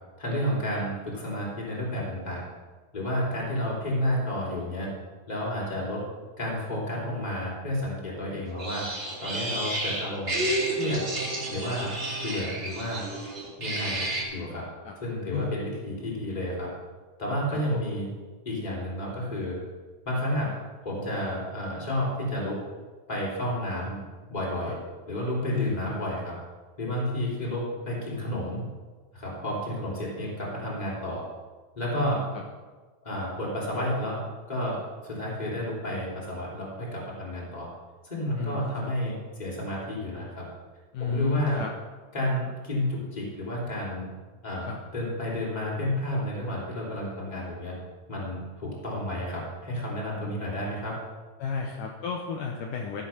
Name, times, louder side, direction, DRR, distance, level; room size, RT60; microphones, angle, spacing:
voice 1, 0.2-2.4 2.9-4.9 5.3-6.0 6.4-8.8 9.2-10.3 10.7-11.0 11.5-11.9 12.2-13.0 13.6-14.7 15.0-16.7 17.2-18.1 18.4-19.6 20.0-20.5 20.8-22.6 23.1-24.0 24.3-24.8 25.1-26.3 26.8-28.6 29.1-31.2 31.7-32.2 33.0-34.2 34.5-37.7 38.0-40.5 41.0-41.6 42.1-44.1 44.4-47.7 48.1-50.9, left 1 dB, 10° left, -4 dB, 3.0 m, -31 dB
sound 1, 8.6-14.2, right 1 dB, 25° right, 1.9 m, -31 dB
voice 2, 17.5-17.9 24.7-24.8 25.5-25.8 32.0-32.4 38.4-38.9 40.9-41.7 44.6-44.8 51.4-53.0, left 5 dB, 70° left, 1 dB, 2.3 m, -33 dB
13.5 x 7.9 x 5.8 m, 1.3 s
omnidirectional pair, 4.2 m